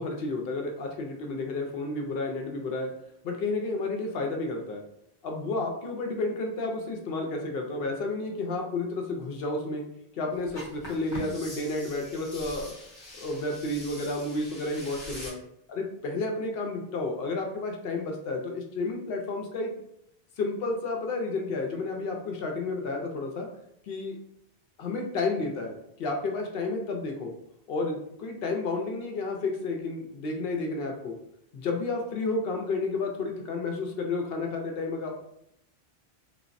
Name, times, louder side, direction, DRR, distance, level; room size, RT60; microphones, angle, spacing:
voice 1, 0.0-2.9 3.2-4.8 5.2-9.8 10.1-12.7 13.2-15.4 15.7-19.7 20.4-23.5 23.9-24.2 24.8-27.3 27.7-31.2 31.5-35.2, left 3 dB, 70° left, 2 dB, 0.8 m, -31 dB
sound 1, 10.5-15.3, left 1 dB, 45° left, 0.9 m, -43 dB
3.3 x 2.0 x 2.5 m, 0.76 s
omnidirectional pair, 1.0 m